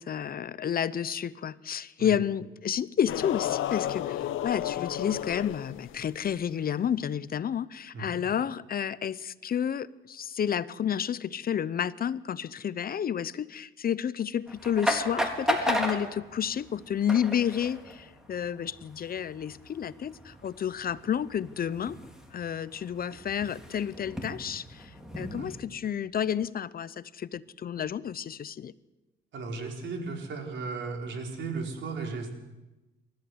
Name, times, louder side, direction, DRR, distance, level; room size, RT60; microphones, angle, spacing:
voice 1, 0.0-22.0 22.3-24.9 25.2-28.7, left 9 dB, 50° left, 17 dB, 0.8 m, -31 dB
sound 1, 3.1-6.4, left 12 dB, 80° left, 0.9 m, -32 dB
sound 2, 14.5-25.6, equal, 5° right, 4.0 m, -35 dB
voice 2, 29.3-32.3, right 4 dB, 70° right, 2 dB, 4.7 m, -35 dB
28.5 x 14.0 x 8.0 m, 1.0 s
cardioid pair, 90°, 20 cm